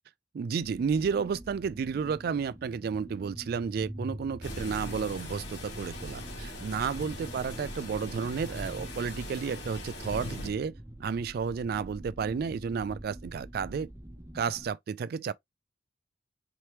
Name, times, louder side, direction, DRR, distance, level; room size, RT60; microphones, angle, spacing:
voice 1, 0.3-13.9 14.3-15.3, right 6 dB, 55° right, 0.3 m, -32 dB
sound 1, 0.6-14.7, right 1 dB, 15° right, 0.6 m, -45 dB
sound 2, 4.4-10.5, left 1 dB, 65° left, 2.9 m, -40 dB
4.3 x 3.3 x 2.9 m
head